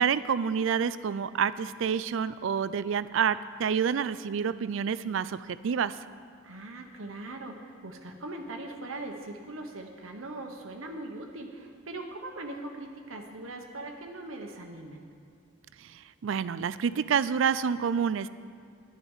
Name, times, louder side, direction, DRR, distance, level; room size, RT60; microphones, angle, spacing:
voice 1, 0.0-6.0 15.8-18.3, right 7 dB, 70° right, 15 dB, 0.4 m, -28 dB
voice 2, 6.4-15.0, right 2 dB, 85° right, 2 dB, 1.2 m, -40 dB
11.0 x 10.5 x 5.5 m, 2.4 s
head